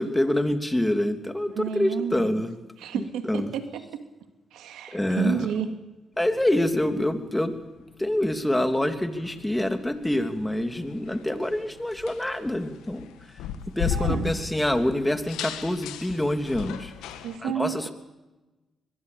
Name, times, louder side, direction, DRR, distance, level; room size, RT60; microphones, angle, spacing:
voice 1, 0.0-2.5 2.9-3.5 4.9-5.5 6.2-7.5 8.0-13.0 13.8-16.9 17.4-17.9, left 1 dB, 10° left, 7 dB, 3.1 m, -26 dB
voice 2, 1.5-2.5 2.8-4.0 4.5-5.7 13.9-14.3 17.2-17.9, right 8 dB, 80° right, 7 dB, 2.4 m, -31 dB
sound 1, 6.2-17.4, left 8 dB, 85° left, 1.8 m, -37 dB
23.5 x 21.5 x 7.1 m, 1.1 s
supercardioid pair, 50°, 0 cm